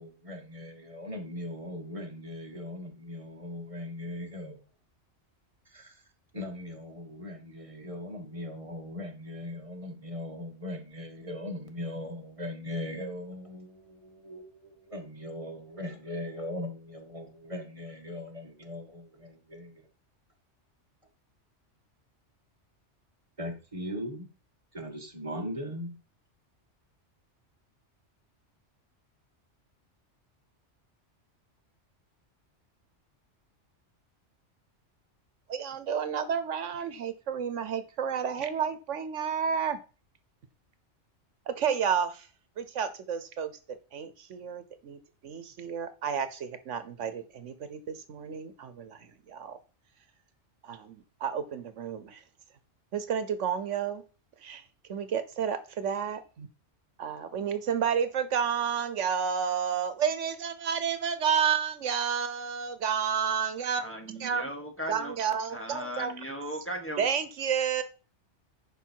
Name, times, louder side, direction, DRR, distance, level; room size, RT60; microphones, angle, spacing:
voice 1, 0.0-4.6 5.7-6.0 6.3-19.9 23.4-24.3 24.7-26.0, left 1 dB, 25° right, 1.8 m, -39 dB
voice 2, 35.5-39.8 41.5-42.3 42.6-43.5 43.9-45.0 45.2-49.6 50.6-52.2 52.9-54.0 54.4-54.6 54.9-56.5 57.0-63.8 64.1-64.4 64.9-66.1 67.0-67.8, right 7 dB, 80° right, 1.2 m, -31 dB
voice 3, 63.8-65.1 65.5-67.1, equal, 10° left, 1.6 m, -37 dB
11.0 x 5.0 x 4.6 m
omnidirectional pair, 1.2 m